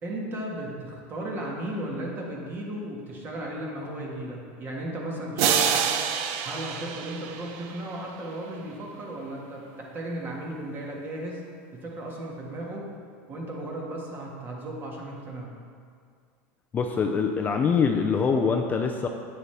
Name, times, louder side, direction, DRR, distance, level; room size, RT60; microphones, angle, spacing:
voice 1, 0.0-5.9 6.4-11.4 11.7-12.8 13.3-15.5, right 1 dB, 30° right, -2 dB, 1.8 m, -35 dB
sound 1, 5.4-8.1, right 7 dB, 60° right, 0.7 m, -27 dB
voice 2, 16.7-19.1, left 5 dB, 25° left, 4 dB, 0.5 m, -24 dB
9.0 x 8.6 x 3.4 m, 2.2 s
supercardioid pair, 135°, 7 cm